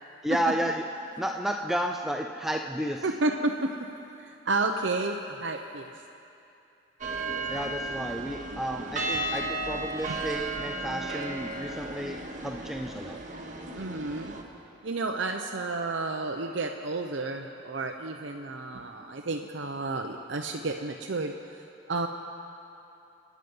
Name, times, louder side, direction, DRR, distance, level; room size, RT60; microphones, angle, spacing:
voice 1, 0.2-0.8 1.2-3.0 7.5-12.2 12.4-13.2, equal, ahead, 3 dB, 0.5 m, -31 dB
voice 2, 3.0-3.5 4.2-5.9 10.1-10.2 13.7-14.3 14.8-22.1, right 3 dB, 70° right, 3 dB, 0.7 m, -31 dB
sound 1, 7.0-14.4, right 2 dB, 40° right, 1.7 m, -34 dB
27.5 x 9.4 x 5.5 m, 2.7 s
head